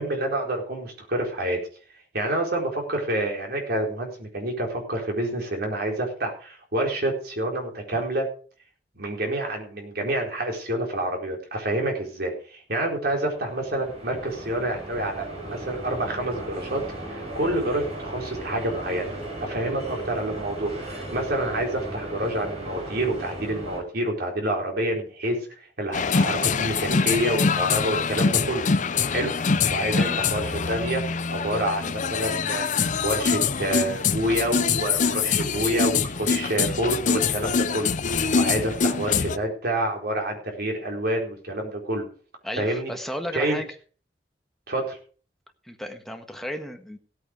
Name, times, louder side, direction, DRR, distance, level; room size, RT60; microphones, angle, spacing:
voice 1, 0.0-1.6 2.1-8.3 9.0-16.8 17.1-19.1 19.4-25.4 25.8-28.7 29.0-29.3 29.7-31.0 31.3-32.6 33.0-42.0 42.6-42.9 43.3-43.6 44.7-45.0, right 1 dB, 60° right, 1 dB, 4.3 m, -28 dB
sound 1, 12.9-23.8, right 1 dB, 40° right, 6.9 m, -36 dB
sound 2, 25.9-39.4, left 5 dB, 45° left, 0.7 m, -24 dB
voice 2, 29.9-30.2 42.4-43.7 45.6-47.0, equal, ahead, 4 dB, 1.5 m, -34 dB
16.5 x 8.8 x 5.1 m, 0.40 s
head